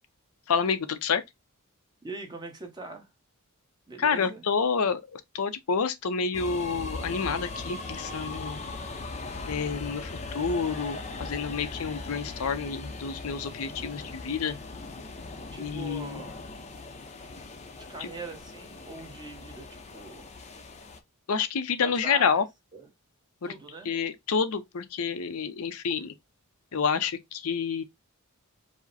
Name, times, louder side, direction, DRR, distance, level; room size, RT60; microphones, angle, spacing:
voice 1, 0.5-1.2 4.0-8.6 9.5-14.6 15.6-16.2 18.0-18.1 21.3-22.4 23.4-23.5 23.8-26.1 26.7-27.8, left 5 dB, 75° left, 0.6 m, -29 dB
voice 2, 2.0-3.1 3.9-4.4 15.5-16.4 17.7-20.4 21.8-22.4 22.7-22.8 23.4-23.9, right 3 dB, 20° right, 1.0 m, -42 dB
sound 1, 6.3-21.0, left 3 dB, 30° left, 0.6 m, -39 dB
4.9 x 2.1 x 4.0 m
head